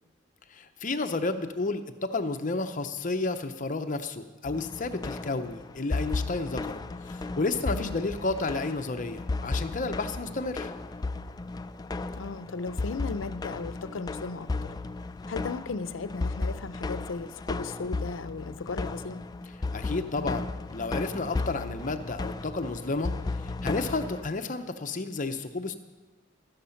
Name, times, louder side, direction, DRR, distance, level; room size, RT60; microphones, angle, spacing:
voice 1, 0.5-10.7 19.7-23.1 23.4-25.7, left 3 dB, 45° left, 8 dB, 0.7 m, -31 dB
sound 1, 4.5-24.3, left 3 dB, 20° left, 0.3 m, -34 dB
voice 2, 7.7-8.1 12.1-14.7 15.3-19.3, left 4 dB, 90° left, 14 dB, 0.6 m, -36 dB
12.5 x 10.5 x 5.8 m, 1.3 s
head